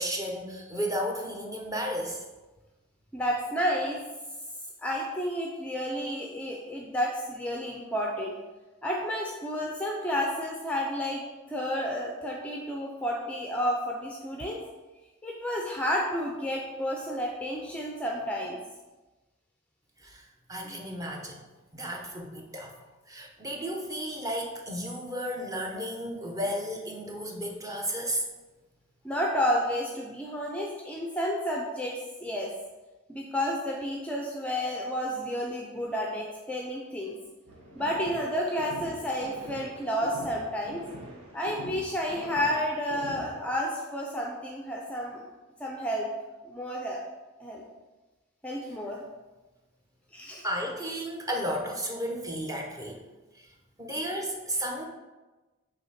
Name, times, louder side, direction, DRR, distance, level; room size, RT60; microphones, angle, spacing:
voice 1, 0.0-2.2 20.0-20.2 20.5-21.4 21.7-22.7 23.1-28.2 50.4-53.0 53.8-54.9, equal, 15° right, 0 dB, 0.8 m, -33 dB
voice 2, 3.1-4.0 4.8-8.3 8.8-11.2 11.5-14.6 15.2-18.6 20.6-20.8 29.0-31.9 32.2-32.5 33.1-37.1 37.8-40.8 41.3-45.2 45.6-46.1 46.4-47.0 47.4-47.6 48.4-49.0 50.1-50.4, equal, 5° left, -1 dB, 0.5 m, -31 dB
sound 1, 37.5-43.5, equal, 80° right, 1.2 m, -44 dB
5.9 x 3.4 x 5.7 m, 1.2 s
head